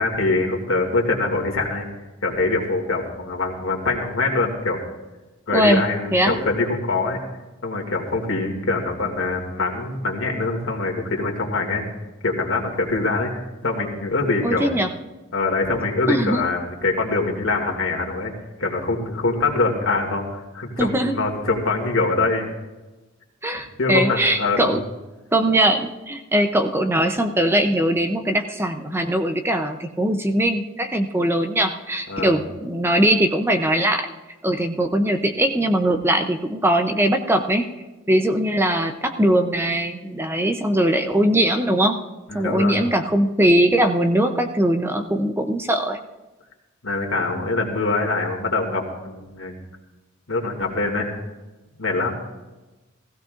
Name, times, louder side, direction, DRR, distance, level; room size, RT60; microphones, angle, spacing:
voice 1, 0.0-1.9 2.2-4.8 5.5-7.2 7.6-11.8 12.2-13.3 13.6-14.7 15.3-18.3 18.6-22.5 23.8-24.8 32.1-32.4 42.3-42.8 46.8-49.6 50.3-51.1 51.8-52.2, left 3 dB, 75° left, 0 dB, 2.4 m, -24 dB
voice 2, 5.5-5.8 6.1-6.3 14.4-14.9 16.1-16.4 20.8-21.1 23.4-24.8 25.3-34.1 34.4-37.7 38.1-42.0 42.3-46.0, right 1 dB, 10° right, 6 dB, 0.6 m, -20 dB
16.5 x 16.0 x 2.5 m, 1.1 s
head